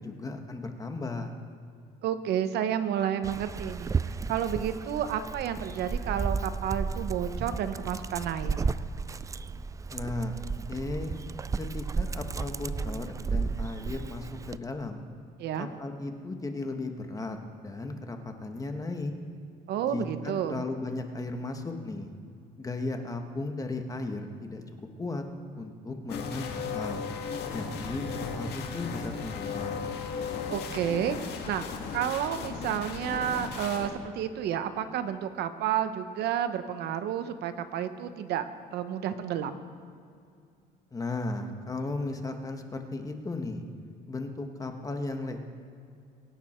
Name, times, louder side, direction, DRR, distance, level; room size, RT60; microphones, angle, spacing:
voice 1, 0.0-1.4 9.9-10.3 10.7-11.1 11.6-15.0 15.6-19.1 19.9-22.1 22.6-24.6 25.0-25.2 25.6-27.0 27.5-29.9 40.9-43.6 44.1-45.4, left 2 dB, 20° left, 5 dB, 1.5 m, -35 dB
voice 2, 2.0-8.6 15.4-15.7 19.7-20.6 30.5-31.7 31.9-39.6, right 9 dB, 75° right, 10 dB, 1.0 m, -31 dB
Dog, 3.2-14.6, right 5 dB, 20° right, 0.3 m, -33 dB
sound 1, 26.1-33.9, left 5 dB, 75° left, 2.0 m, -36 dB
23.5 x 9.3 x 4.5 m, 2.4 s
cardioid pair, 110°, 17 cm